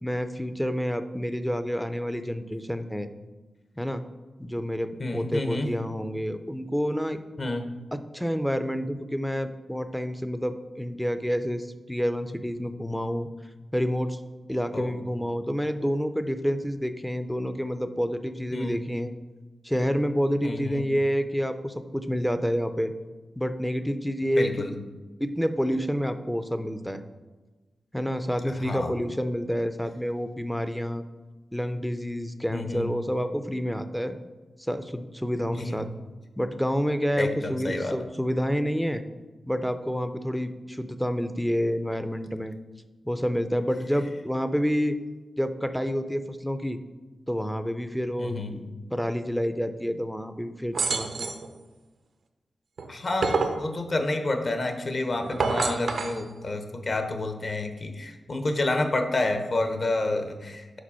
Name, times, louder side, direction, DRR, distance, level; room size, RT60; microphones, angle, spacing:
voice 1, 0.0-3.1 3.8-4.0 4.4-7.2 7.9-13.3 13.7-14.2 14.5-19.1 19.6-22.9 23.4-24.5 25.2-27.0 27.9-31.0 31.5-34.2 34.6-35.9 36.4-39.0 39.5-42.5 43.1-44.9 45.4-46.8 47.3-48.6 48.9-51.3, equal, 5° left, 9 dB, 0.4 m, -28 dB
voice 2, 5.0-5.7 7.4-7.7 14.7-15.0 18.5-18.8 20.4-20.8 24.4-24.8 28.5-28.9 32.5-32.9 35.5-35.8 37.2-38.0 48.2-48.6 52.9-60.8, left 2 dB, 45° left, 6 dB, 0.7 m, -29 dB
sound 1, 50.7-51.5 52.8-53.6 55.2-56.2, right 4 dB, 75° right, 0.5 m, -27 dB
5.0 x 3.9 x 5.6 m, 1.2 s
cardioid pair, 80°, 0 cm